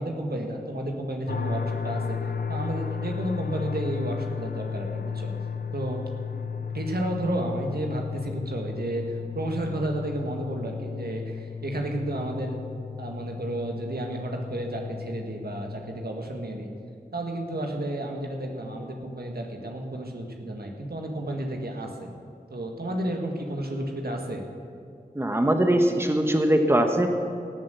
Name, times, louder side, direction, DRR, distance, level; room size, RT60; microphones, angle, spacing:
voice 1, 0.0-2.2 2.5-5.3 5.7-6.0 6.7-12.6 13.0-16.7 17.1-22.1 22.5-24.4, right 1 dB, 70° right, 2 dB, 1.7 m, -32 dB
sound 1, 1.3-16.1, left 6 dB, 70° left, 0.7 m, -34 dB
voice 2, 25.1-27.1, right 1 dB, 15° right, 5 dB, 1.1 m, -21 dB
17.0 x 7.5 x 6.9 m, 2.3 s
cardioid pair, 45°, 17 cm